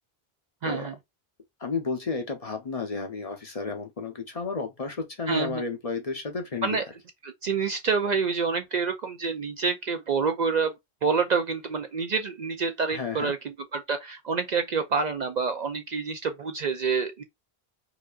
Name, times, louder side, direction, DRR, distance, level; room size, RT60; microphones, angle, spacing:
voice 1, 0.6-0.9 5.3-5.6 6.6-6.8 7.2-17.2, right 5 dB, 55° right, 0.5 m, -27 dB
voice 2, 1.6-6.8 12.9-13.3, left 4 dB, 40° left, 0.7 m, -32 dB
4.8 x 2.6 x 2.3 m
omnidirectional pair, 1.0 m